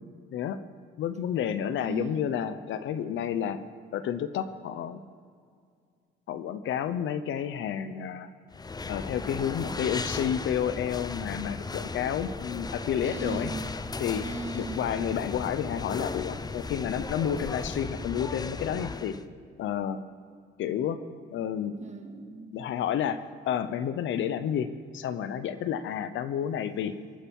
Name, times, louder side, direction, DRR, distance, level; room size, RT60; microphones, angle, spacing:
voice 1, 1.0-3.6 3.9-5.0 6.3-8.3 8.9-13.5 14.0-14.2 14.5-19.1 19.6-20.0 20.6-21.0 21.3-21.7 22.5-24.7 24.9-26.9, left 9 dB, 80° left, 12 dB, 0.9 m, -30 dB
voice 2, 1.8-2.4 13.0-13.7 14.2-15.1 21.8-22.6, right 3 dB, 35° right, 5 dB, 1.9 m, -38 dB
sound 1, 8.5-19.2, left 4 dB, 20° left, 0.6 m, -36 dB
23.0 x 9.1 x 5.4 m, 2.2 s
cardioid pair, 90°, 20 cm